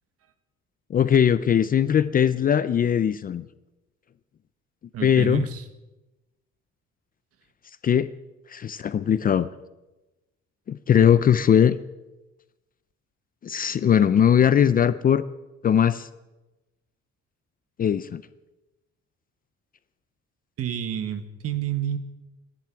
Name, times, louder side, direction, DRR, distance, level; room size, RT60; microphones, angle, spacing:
voice 1, 0.9-3.5 5.0-5.5 7.8-8.1 8.5-9.5 10.7-11.8 13.4-15.2 15.6-16.1 17.8-18.2, left 8 dB, 30° left, 14 dB, 0.4 m, -20 dB
voice 2, 4.9-5.6 20.6-22.0, right 9 dB, 55° right, 10 dB, 1.4 m, -29 dB
27.5 x 11.0 x 4.6 m, 1.0 s
cardioid pair, 165°, 29 cm